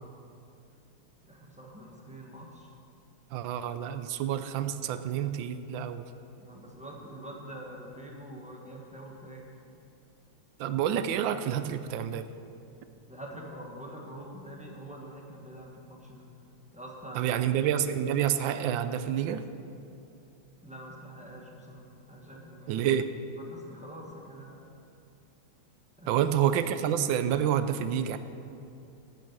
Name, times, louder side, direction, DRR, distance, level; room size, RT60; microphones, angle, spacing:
voice 1, 1.2-2.7 6.4-9.6 13.1-16.3 16.7-17.3 20.6-22.9 23.4-24.7 26.0-26.2, right 1 dB, 5° right, -2 dB, 1.0 m, -45 dB
voice 2, 3.3-6.1 10.6-12.2 17.1-19.4 22.7-23.1 26.1-28.2, right 9 dB, 75° right, 11 dB, 1.3 m, -28 dB
9.0 x 8.5 x 7.4 m, 2.7 s
omnidirectional pair, 2.2 m